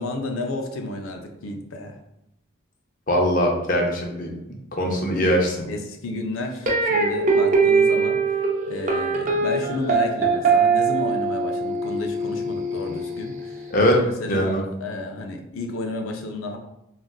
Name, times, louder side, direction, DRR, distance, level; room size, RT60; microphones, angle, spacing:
voice 1, 0.0-2.0 5.7-8.2 8.7-16.6, left 2 dB, 90° left, 3 dB, 0.5 m, -32 dB
voice 2, 3.1-4.3 4.7-5.7 13.7-14.0 14.3-14.6, equal, 40° left, 1 dB, 0.6 m, -21 dB
sound 1, 6.7-13.8, right 4 dB, 40° right, 0.5 m, -22 dB
3.6 x 2.4 x 2.3 m, 0.86 s
head